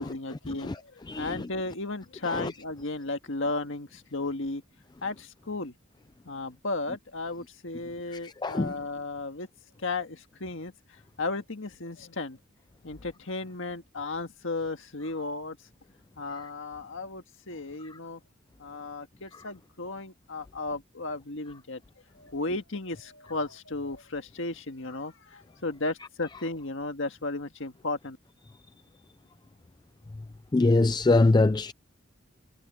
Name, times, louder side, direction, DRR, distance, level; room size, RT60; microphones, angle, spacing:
voice 1, 0.0-4.6 5.0-5.7 6.3-9.5 9.8-12.4 12.8-15.6 16.2-18.2 18.6-21.8 22.1-28.2, left 2 dB, 65° left, 1.8 m, -35 dB
voice 2, 1.1-1.4 2.3-2.5 8.2-8.7 30.5-31.7, left 2 dB, 20° left, 0.4 m, -23 dB
head